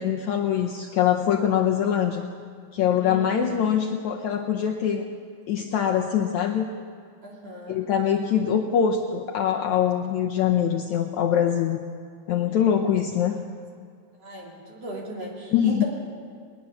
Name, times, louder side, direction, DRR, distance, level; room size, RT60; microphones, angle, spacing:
voice 1, 0.0-2.2 2.7-5.1 5.5-6.7 7.7-11.8 12.3-13.4 15.5-15.8, left 9 dB, 90° left, 2 dB, 1.6 m, -23 dB
voice 2, 3.0-3.6 7.2-7.8 13.2-13.4 14.2-15.8, right 2 dB, 40° right, -2 dB, 3.8 m, -37 dB
20.5 x 20.0 x 7.0 m, 2.1 s
omnidirectional pair, 4.5 m